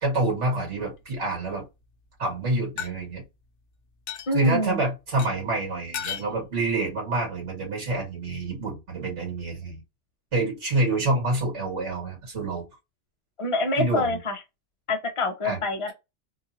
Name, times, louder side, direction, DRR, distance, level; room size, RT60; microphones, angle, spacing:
voice 1, 0.0-1.7 2.2-3.2 4.3-9.8 10.3-12.6 13.8-14.2 15.4-15.6, right 2 dB, 80° right, 2.3 m, -27 dB
sound 1, 0.8-1.4 2.8-2.9 4.1-4.3 5.2-5.3 5.9-6.3, left 8 dB, 80° left, 1.0 m, -34 dB
voice 2, 4.3-4.8 13.4-14.4 14.9-15.9, left 2 dB, 30° left, 0.9 m, -26 dB
3.8 x 2.7 x 2.8 m
omnidirectional pair, 1.2 m